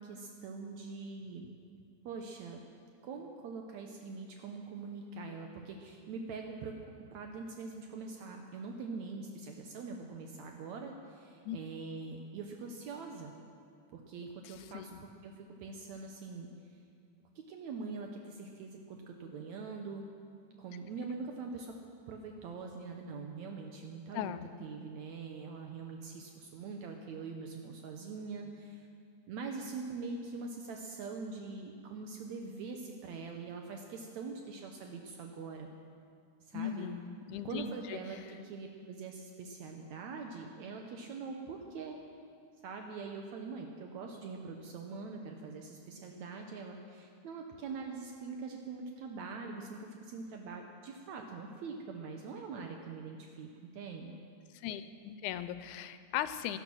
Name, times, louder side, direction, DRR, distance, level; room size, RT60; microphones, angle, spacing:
voice 1, 0.0-1.5 2.1-2.6 3.0-13.3 13.9-16.5 17.4-20.0 20.6-21.8 22.1-24.3 24.6-28.9 29.3-35.7 36.5-36.9 37.4-42.0 42.6-54.2, right 4 dB, 70° right, 2 dB, 2.1 m, -43 dB
voice 2, 14.4-15.0 24.1-24.5 36.5-38.0 54.5-56.6, left 10 dB, 90° left, 12 dB, 2.1 m, -38 dB
16.5 x 11.5 x 6.2 m, 2.3 s
omnidirectional pair, 3.5 m